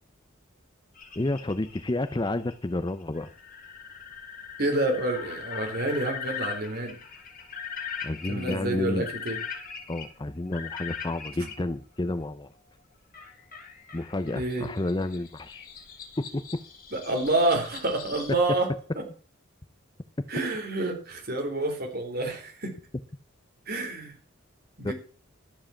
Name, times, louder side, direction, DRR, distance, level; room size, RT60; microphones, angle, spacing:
sound 1, 0.9-11.5 13.1-18.3, left 7 dB, 45° left, 2.6 m, -40 dB
voice 1, 1.2-3.3 8.0-9.1 9.9-12.5 13.9-15.7 16.2-16.4 24.8-24.9, left 2 dB, 20° left, 0.6 m, -30 dB
voice 2, 4.6-7.0 8.3-9.4 14.3-14.7 16.9-19.0 20.3-22.7 23.7-24.1 24.8-24.9, right 2 dB, 50° right, 3.9 m, -28 dB
13.0 x 7.6 x 7.0 m
head